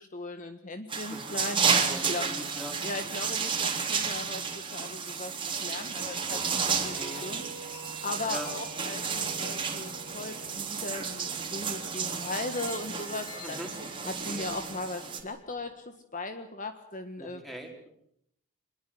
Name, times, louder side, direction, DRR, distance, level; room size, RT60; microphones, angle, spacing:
voice 1, 0.0-2.3 2.8-7.5 8.0-17.4, left 2 dB, 35° left, 8 dB, 1.6 m, -38 dB
sound 1, 0.9-15.2, right 6 dB, 25° right, 3.4 m, -32 dB
voice 2, 1.9-3.1 6.8-7.3 8.3-8.5 8.8-8.9 13.4-13.7 14.2-14.5 17.2-17.9, equal, ahead, 3 dB, 4.9 m, -42 dB
sound 2, 5.9-15.8, right 1 dB, 20° left, 7.1 m, -48 dB
26.0 x 22.0 x 7.9 m, 0.74 s
head